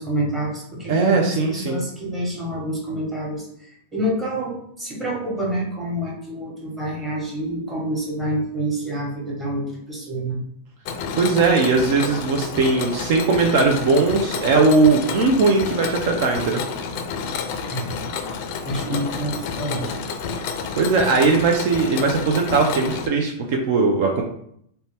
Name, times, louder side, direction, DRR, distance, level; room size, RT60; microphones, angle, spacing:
voice 1, 0.0-3.5 3.9-10.4 17.7-17.9 18.6-19.9, right 1 dB, 15° right, -4 dB, 1.2 m, -27 dB
voice 2, 0.9-1.8 11.1-16.6 18.9-19.0 20.7-24.2, right 4 dB, 60° right, 1 dB, 0.4 m, -19 dB
Mechanisms, 10.8-23.1, left 5 dB, 55° left, 0.4 m, -30 dB
2.7 x 2.1 x 3.3 m, 0.70 s
hypercardioid pair, 125°, 0 cm